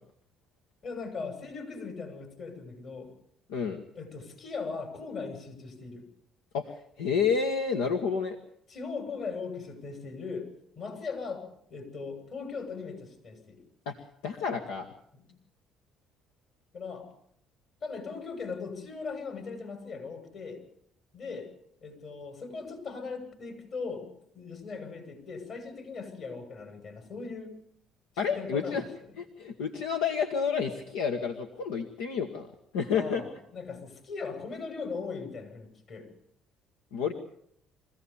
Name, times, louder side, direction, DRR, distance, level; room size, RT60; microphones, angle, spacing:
voice 1, 0.8-3.1 3.9-6.0 8.7-10.5 10.8-11.4 11.7-13.6 15.1-15.3 16.7-17.1 17.8-20.6 21.1-21.5 21.8-24.1 24.3-27.5 28.2-29.1 32.9-36.1, left 4 dB, 55° left, 6 dB, 7.2 m, -39 dB
voice 2, 3.5-3.8 6.5-8.4 13.8-14.0 14.2-14.9 28.2-28.8 29.2-33.2 36.9-37.1, left 6 dB, 85° left, 4 dB, 1.4 m, -30 dB
23.5 x 16.0 x 7.1 m, 0.69 s
supercardioid pair, 70°, 0 cm